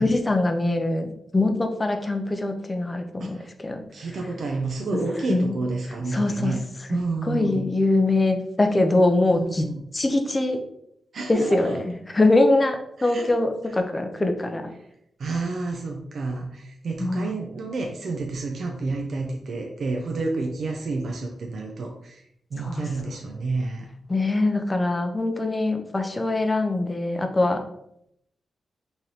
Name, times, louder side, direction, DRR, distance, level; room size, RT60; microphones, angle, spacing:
voice 1, 0.0-3.8 5.3-5.5 6.1-6.6 7.2-9.7 9.9-10.6 11.3-14.7 17.0-17.3 22.6-22.9 24.1-27.6, left 2 dB, 20° left, 5 dB, 0.5 m, -23 dB
voice 2, 3.9-6.6 6.9-7.6 9.3-9.8 11.1-11.8 13.0-13.3 15.2-22.2 22.5-23.9, right 3 dB, 60° right, 1 dB, 0.4 m, -30 dB
3.9 x 3.2 x 2.8 m, 0.76 s
wide cardioid pair, 115°, 0 cm